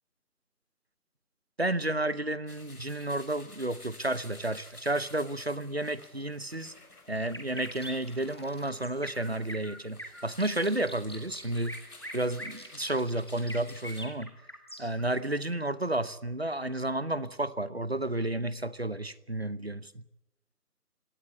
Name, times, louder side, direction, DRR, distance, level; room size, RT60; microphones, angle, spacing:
voice 1, 1.6-6.7 7.1-11.8 12.1-14.3 14.8-20.0, right 1 dB, 40° right, 0.9 m, -31 dB
sound 1, 2.5-14.1, left 2 dB, 70° left, 6.0 m, -53 dB
sound 2, 7.3-15.0, equal, 15° left, 1.7 m, -43 dB
25.0 x 17.5 x 9.6 m
figure-of-eight pair, 180°, 47 cm